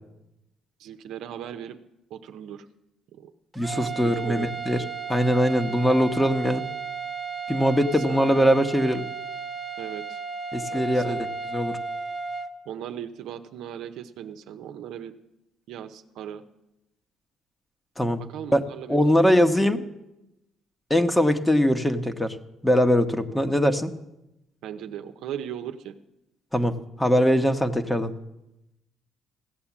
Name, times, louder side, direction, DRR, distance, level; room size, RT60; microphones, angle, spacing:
voice 1, 0.8-1.8 2.1-2.6 3.2-3.3 3.7-4.5 8.1-8.6 9.8-10.2 10.7-11.2 12.7-15.1 15.7-16.4 18.2-19.7 23.3-23.7 24.6-25.9, right 10 dB, 75° right, 7 dB, 0.8 m, -38 dB
voice 2, 3.5-4.8 5.1-6.6 7.5-9.0 10.5-11.2 11.5-11.8 18.0-18.2 18.5-19.8 20.9-22.4 22.6-23.9 26.5-28.1, equal, 10° left, 7 dB, 1.2 m, -22 dB
sound 1, 3.5-12.5, right 5 dB, 15° right, 1.3 m, -34 dB
16.0 x 8.6 x 7.3 m, 0.90 s
supercardioid pair, 80°, 0 cm